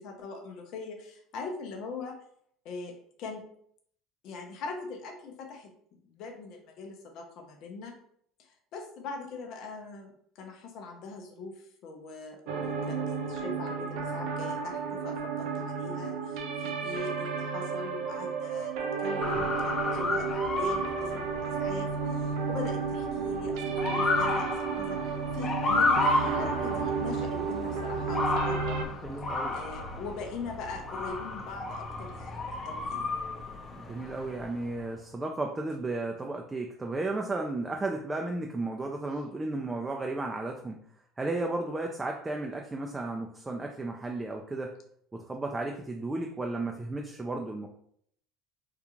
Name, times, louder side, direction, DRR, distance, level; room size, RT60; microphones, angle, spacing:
voice 1, 0.0-2.2 2.6-3.5 4.2-7.9 8.4-13.0 13.3-28.8 29.5-33.2, left 4 dB, 60° left, 3 dB, 0.6 m, -42 dB
sound 1, 12.5-28.9, right 5 dB, 70° right, 0.5 m, -32 dB
Motor vehicle (road) / Siren, 19.2-34.8, left 2 dB, 30° left, 0.8 m, -32 dB
voice 2, 29.0-29.6 33.8-40.8 41.2-44.7 45.1-47.7, right 2 dB, 20° right, 1 dB, 0.4 m, -34 dB
3.7 x 2.4 x 2.9 m, 0.65 s
supercardioid pair, 85°, 0 cm